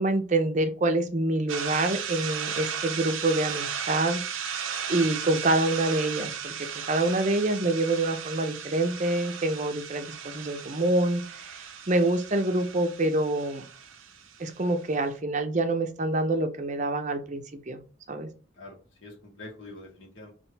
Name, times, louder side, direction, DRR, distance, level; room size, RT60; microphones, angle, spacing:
voice 1, 0.0-4.2 4.9-6.5 6.9-13.6 14.4-17.8 18.1-18.3, right 2 dB, 35° right, 7 dB, 0.6 m, -26 dB
sound 1, 1.5-14.8, right 7 dB, 80° right, 0.7 m, -36 dB
voice 2, 18.5-20.3, left 2 dB, 75° left, -2 dB, 2.1 m, -45 dB
4.5 x 3.1 x 3.3 m, 0.36 s
head